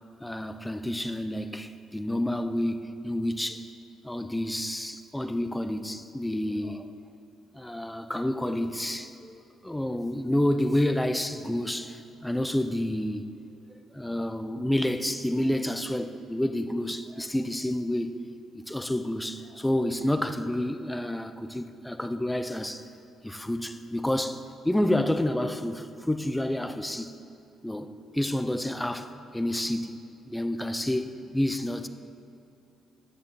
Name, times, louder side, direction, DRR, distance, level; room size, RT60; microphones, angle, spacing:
voice 1, 0.2-3.7 4.0-6.9 7.5-13.3 13.9-18.2 18.5-22.9 23.2-24.4 24.6-27.1 27.6-30.0 30.3-31.9, left 1 dB, 5° left, 0.6 m, -29 dB
9.9 x 6.8 x 6.8 m
cardioid pair, 90°, 0 cm